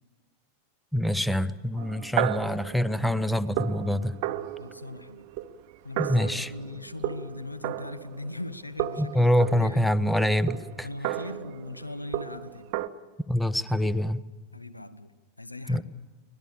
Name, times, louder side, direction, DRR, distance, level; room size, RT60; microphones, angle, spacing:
voice 1, 0.9-4.1 6.0-6.5 9.0-10.9 13.3-14.2 15.7-15.8, left 1 dB, ahead, 17 dB, 0.7 m, -25 dB
sound 1, 1.8-8.5 8.8-12.9, right 13 dB, 45° right, 0.8 m, -34 dB
voice 2, 4.6-5.2 5.8-9.3 9.6-9.9 10.8-12.7 14.5-15.1 15.4-15.8, left 2 dB, 85° left, 14 dB, 0.9 m, -39 dB
24.0 x 18.5 x 6.9 m, 1.4 s
figure-of-eight pair, 90°, 0 cm